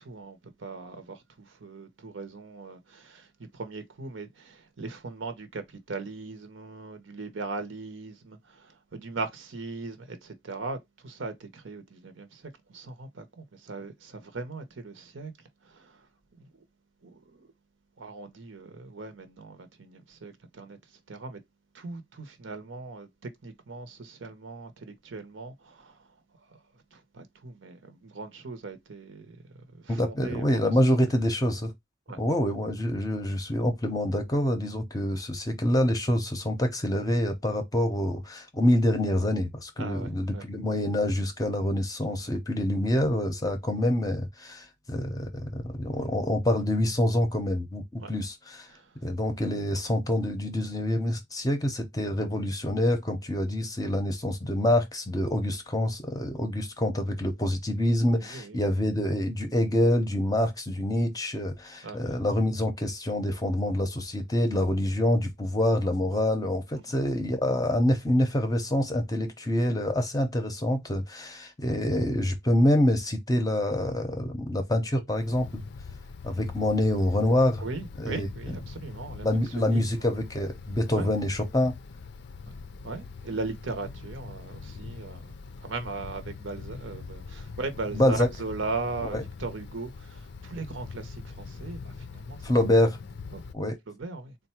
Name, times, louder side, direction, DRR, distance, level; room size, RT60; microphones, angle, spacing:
voice 1, 0.0-15.3 15.6-16.1 16.4-16.5 17.0-17.5 18.0-20.8 21.1-21.4 21.7-26.1 26.5-26.6 26.9-30.7 32.1-32.2 39.8-40.5 48.0-48.1 48.7-48.9 58.2-58.6 61.8-62.2 66.9-67.0 77.6-79.3 79.5-80.1 81.0-81.1 82.8-85.3 85.6-92.5 93.3-93.4 93.9-94.4, right 3 dB, 70° right, 0.8 m, -39 dB
voice 2, 29.9-31.7 32.2-48.7 49.0-75.6 76.2-77.7 78.0-78.3 79.2-81.7 87.9-88.3 89.1-89.2 92.4-93.0 93.5-93.8, left 1 dB, 20° left, 0.6 m, -26 dB
Wind, 75.1-93.5, left 4 dB, 55° left, 0.4 m, -43 dB
3.8 x 2.2 x 4.3 m
head